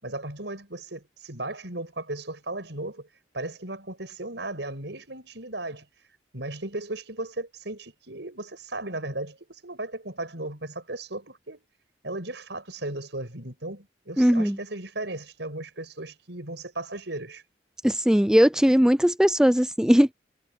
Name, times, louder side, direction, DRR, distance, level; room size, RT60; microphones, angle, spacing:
voice 1, 0.0-3.1 3.3-5.9 6.3-11.6 12.0-17.4, right 2 dB, 70° right, 6.0 m, -36 dB
voice 2, 14.2-14.6 17.8-20.1, equal, 5° right, 0.4 m, -19 dB
head